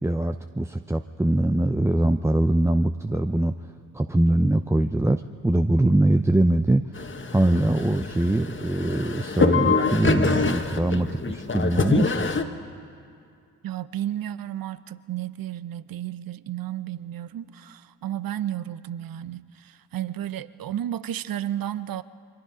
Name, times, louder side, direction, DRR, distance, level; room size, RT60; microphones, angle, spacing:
voice 1, 0.0-3.5 3.9-6.8 7.3-12.3, right 1 dB, 5° right, 8 dB, 0.7 m, -22 dB
sound 1, 6.9-12.4, left 4 dB, 25° left, 1.6 m, -25 dB
voice 2, 13.6-22.0, right 11 dB, 50° right, 16 dB, 0.9 m, -32 dB
28.0 x 24.0 x 5.1 m, 2.3 s
hypercardioid pair, 45°, 44 cm